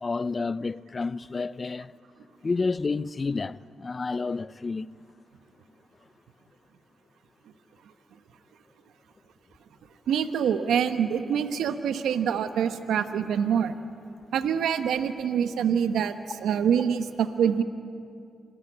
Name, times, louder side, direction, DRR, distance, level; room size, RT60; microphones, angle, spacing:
voice 1, 0.0-1.9 2.4-4.9, left 4 dB, 40° left, 0.7 m, -30 dB
voice 2, 10.1-13.7 14.3-16.1 16.4-17.6, right 8 dB, 80° right, 1.1 m, -25 dB
26.5 x 19.5 x 9.8 m
supercardioid pair, 45°, 0 cm